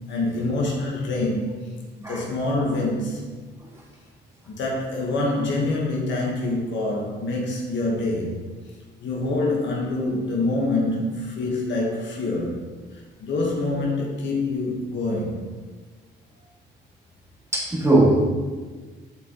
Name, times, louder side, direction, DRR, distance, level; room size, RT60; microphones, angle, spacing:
voice 1, 0.1-3.2 4.5-8.5 9.0-12.6 12.9-15.5, left 2 dB, 65° left, -2 dB, 1.2 m, -26 dB
voice 2, 17.5-18.3, right 1 dB, 15° right, -4 dB, 1.9 m, -18 dB
7.3 x 6.1 x 2.9 m, 1.4 s
cardioid pair, 90°, 20 cm